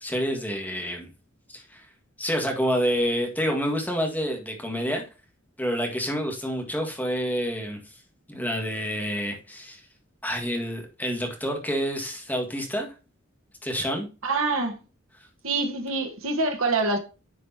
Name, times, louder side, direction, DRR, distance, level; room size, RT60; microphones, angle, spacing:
voice 1, 0.0-1.1 1.5-1.9 2.2-5.0 5.6-7.8 8.3-9.8 10.2-12.9 13.6-14.1, equal, 10° left, 1.8 m, -28 dB
voice 2, 14.2-14.8 15.4-17.0, right 3 dB, 85° right, 1.5 m, -25 dB
9.9 x 5.0 x 2.8 m
head